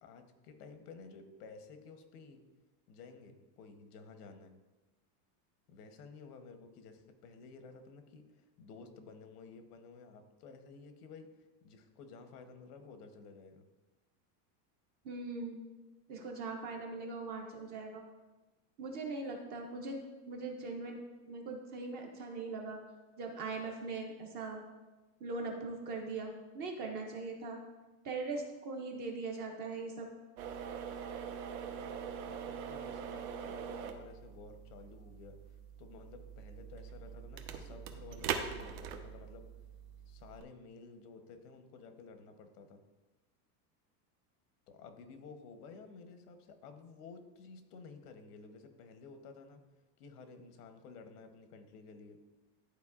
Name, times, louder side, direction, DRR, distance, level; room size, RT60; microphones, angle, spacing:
voice 1, 0.0-2.4 2.9-4.5 5.7-13.7 31.7-32.0 32.3-39.5 40.1-42.8 44.7-49.6 50.0-52.2, left 4 dB, 85° left, 7 dB, 1.0 m, -53 dB
voice 2, 15.0-15.6 16.1-18.0 18.8-21.0 21.3-22.8 23.2-24.6 25.2-27.6 28.0-30.1, right 3 dB, 25° right, 2 dB, 0.4 m, -40 dB
sound 1, 30.4-40.4, right 7 dB, 75° right, 0.9 m, -43 dB
11.5 x 4.3 x 2.4 m, 1.2 s
supercardioid pair, 165°, 45 cm